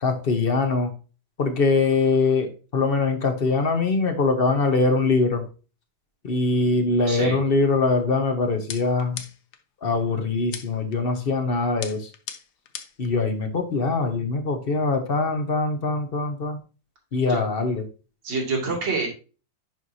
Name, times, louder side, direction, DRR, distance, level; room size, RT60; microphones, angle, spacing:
voice 1, 0.0-0.9 1.4-5.4 6.2-9.2 9.8-12.1 13.0-16.6 17.1-17.8, left 3 dB, 40° left, 5 dB, 0.9 m, -23 dB
voice 2, 7.1-7.4 17.3-17.5 18.2-19.1, right 3 dB, 75° right, -2 dB, 3.1 m, -27 dB
sound 1, 8.7-9.6 10.5-11.0 11.8-13.1, left 8 dB, 65° left, 1.3 m, -37 dB
10.5 x 4.6 x 2.7 m, 0.34 s
omnidirectional pair, 2.1 m